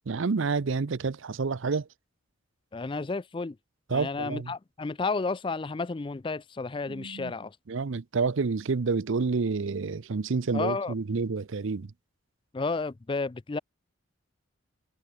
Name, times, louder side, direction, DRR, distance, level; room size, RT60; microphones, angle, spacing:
voice 1, 0.1-1.9 3.9-4.5 6.9-7.3 7.7-11.9, right 4 dB, 70° right, 0.6 m, -29 dB
voice 2, 2.7-3.6 3.9-7.6 10.5-10.9 12.5-13.6, left 3 dB, 25° left, 0.4 m, -32 dB
head